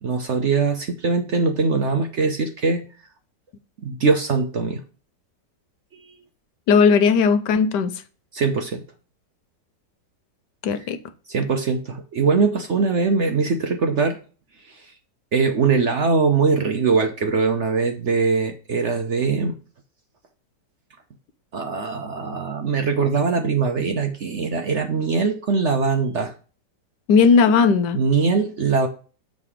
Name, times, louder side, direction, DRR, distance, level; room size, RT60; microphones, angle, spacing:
voice 1, 0.0-2.9 3.8-4.8 5.9-6.2 8.3-8.8 11.3-14.2 14.7-14.8 15.3-19.6 21.5-26.3 27.9-28.9, right 4 dB, 55° right, 0.9 m, -22 dB
voice 2, 6.7-7.9 10.6-11.0 27.1-28.0, left 5 dB, 75° left, 1.3 m, -16 dB
7.4 x 3.9 x 4.8 m
omnidirectional pair, 1.9 m